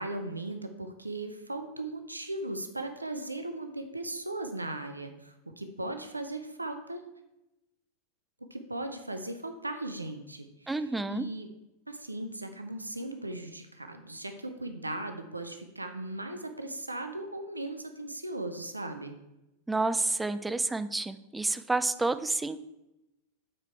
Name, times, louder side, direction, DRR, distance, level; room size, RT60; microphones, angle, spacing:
voice 1, 0.0-7.1 8.4-11.5 11.9-19.1, right 2 dB, 85° right, 7 dB, 0.6 m, -38 dB
voice 2, 10.7-11.3 19.7-22.6, right 2 dB, 10° right, 12 dB, 0.4 m, -29 dB
8.8 x 4.6 x 4.5 m, 0.94 s
figure-of-eight pair, 90°, 0 cm